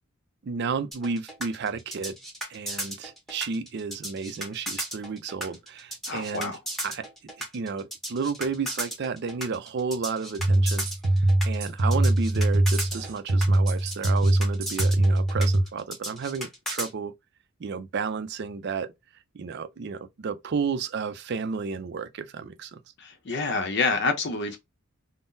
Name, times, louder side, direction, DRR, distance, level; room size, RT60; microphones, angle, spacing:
voice 1, 0.4-2.2 2.5-7.1 7.4-10.9 11.4-17.1 17.6-18.9 19.3-22.8, right 5 dB, 50° right, 0.4 m, -32 dB
sound 1, 0.9-16.9, equal, ahead, 1.0 m, -35 dB
voice 2, 6.1-6.6 23.0-24.6, left 4 dB, 55° left, 0.6 m, -27 dB
sound 2, 10.4-15.6, right 1 dB, 75° right, 0.7 m, -22 dB
3.6 x 2.0 x 2.5 m
head